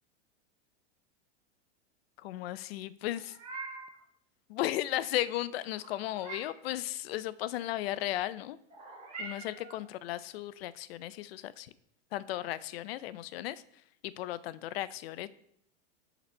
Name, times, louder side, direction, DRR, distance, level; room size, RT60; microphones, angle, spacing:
voice 1, 2.2-3.3 4.5-8.6 9.2-11.7 12.1-13.6 14.0-15.3, left 14 dB, 55° left, 16 dB, 0.5 m, -35 dB
Meow, 3.1-4.0 5.7-6.7 8.7-9.8, right 3 dB, 15° right, 2.3 m, -44 dB
10.0 x 4.0 x 5.3 m, 0.73 s
supercardioid pair, 150°, 37 cm